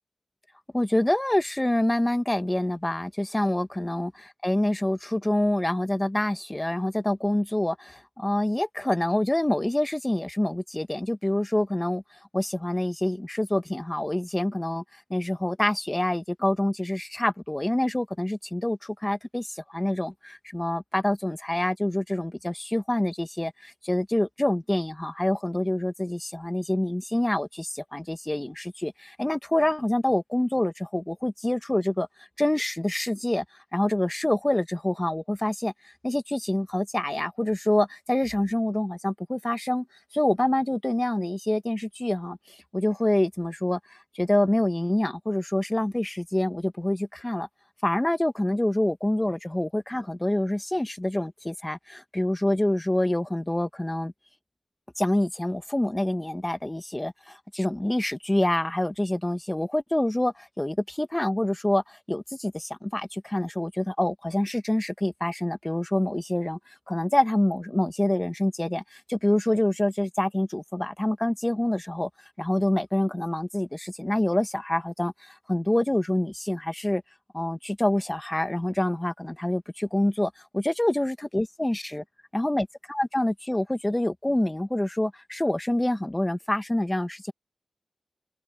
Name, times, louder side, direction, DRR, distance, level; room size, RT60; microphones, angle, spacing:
voice 1, 0.7-12.0 12.3-14.8 15.1-32.1 32.4-33.4 33.7-35.7 36.0-39.8 40.1-42.4 42.7-47.5 47.8-54.1 55.0-66.6 66.9-72.1 72.4-77.0 77.3-82.0 82.3-87.3, left 1 dB, 15° left, 1.2 m, -26 dB
wide cardioid pair, 100°, 0 cm